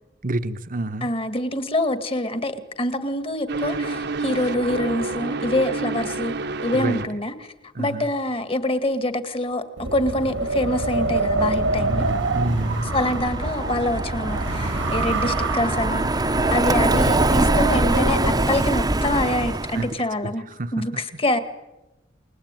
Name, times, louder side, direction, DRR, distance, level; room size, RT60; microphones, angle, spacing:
voice 1, 0.2-1.1 6.7-7.0 7.7-8.1 11.8-12.9 19.7-19.9 20.5-21.0, right 2 dB, 50° right, 11 dB, 1.1 m, -28 dB
voice 2, 1.0-6.3 6.6-12.1 12.9-20.4 20.7-21.4, left 1 dB, 30° left, 11 dB, 2.0 m, -25 dB
sound 1, 3.5-7.1, right 3 dB, 65° right, 1.3 m, -29 dB
Wind, 9.8-18.5, right 2 dB, 85° right, 2.1 m, -26 dB
Car passing by, 11.4-19.9, right 2 dB, 20° right, 1.0 m, -24 dB
29.5 x 20.0 x 9.1 m, 1.0 s
head